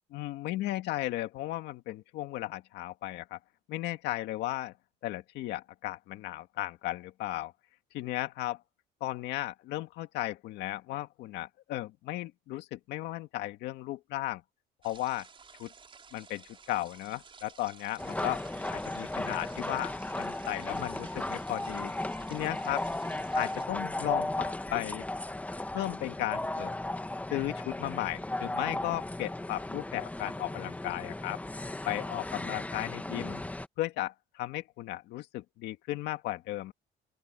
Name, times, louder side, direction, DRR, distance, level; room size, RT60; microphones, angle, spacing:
voice 1, 0.1-3.4 3.7-4.7 5.0-7.5 7.9-8.6 9.0-14.4 14.8-15.3 15.6-15.7 16.1-18.4 18.7-21.9 22.3-22.9 23.4-25.0 25.7-26.7 27.3-31.4 31.9-33.4 33.8-36.7, left 16 dB, 85° left, 1.9 m, -35 dB
sound 1, 14.8-23.7, right 5 dB, 30° right, 5.2 m, -54 dB
sound 2, 18.0-33.7, left 1 dB, 10° left, 1.3 m, -36 dB
open air
cardioid pair, 110°, 17 cm